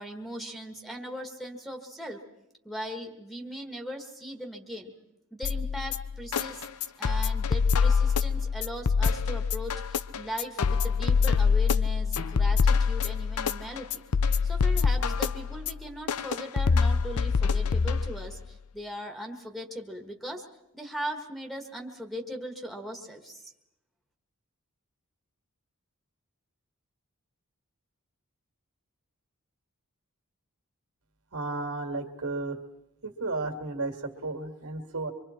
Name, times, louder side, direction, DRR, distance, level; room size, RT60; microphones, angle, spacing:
voice 1, 0.0-2.2 2.6-4.9 5.3-6.6 7.0-14.0 14.5-18.4 18.7-20.4 20.7-23.4, equal, ahead, 1 dB, 1.6 m, -39 dB
sound 1, 5.4-18.4, left 5 dB, 80° left, 0.6 m, -25 dB
voice 2, 31.3-32.6 33.0-35.1, right 3 dB, 70° right, 3 dB, 2.3 m, -33 dB
25.5 x 24.0 x 4.4 m, 0.88 s
head